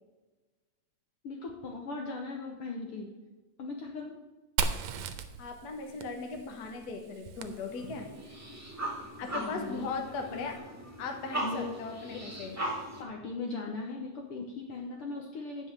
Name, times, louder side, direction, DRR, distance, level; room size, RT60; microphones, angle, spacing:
voice 1, 1.2-3.1 3.6-4.1 9.2-9.9 10.3-10.5 11.4-11.8 12.1-12.2 12.5-12.7 13.0-15.7, left 3 dB, 65° left, 1 dB, 1.5 m, -39 dB
Fire, 4.6-8.3, right 6 dB, 75° right, 1.8 m, -37 dB
voice 2, 5.4-8.1 9.2-10.6 11.0-12.6, left 4 dB, 50° left, 3 dB, 1.3 m, -38 dB
sound 1, 7.5-13.0, right 1 dB, 5° right, 1.5 m, -39 dB
9.7 x 5.5 x 6.7 m, 1.2 s
omnidirectional pair, 3.3 m